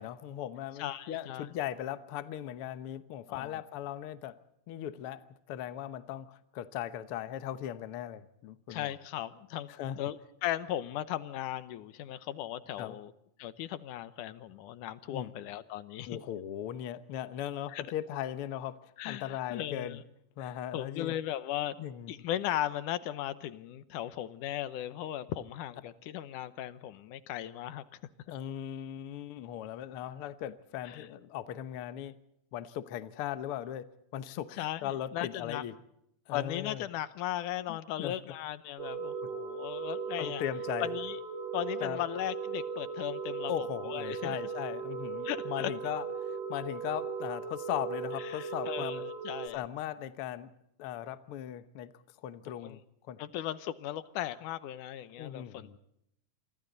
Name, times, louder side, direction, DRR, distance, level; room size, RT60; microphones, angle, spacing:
voice 1, 0.0-4.4 4.7-5.2 5.5-8.9 9.8-10.0 12.8-13.0 15.1-15.3 16.1-20.0 20.4-21.1 21.8-22.1 28.3-32.2 32.5-33.8 34.1-35.8 36.3-36.8 37.7-38.1 39.2-39.3 40.2-40.9 41.8-42.0 43.5-49.0 49.5-50.5 50.8-51.9 52.2-52.8 53.1-53.2 55.2-55.8, left 11 dB, 60° left, 13 dB, 1.5 m, -38 dB
voice 2, 0.8-1.5 3.3-3.6 8.7-9.7 9.9-13.1 13.4-16.2 17.7-17.8 19.0-20.0 20.4-21.8 22.1-27.8 30.8-31.1 34.6-35.6 36.3-40.4 40.8-41.2 41.5-44.4 45.2-45.7 48.2-49.6 52.5-52.8 53.2-55.8, left 12 dB, 85° left, 14 dB, 2.5 m, -37 dB
sound 1, 38.8-49.5, right 5 dB, 65° right, 2.5 m, -38 dB
27.5 x 24.5 x 4.0 m, 0.77 s
omnidirectional pair, 3.6 m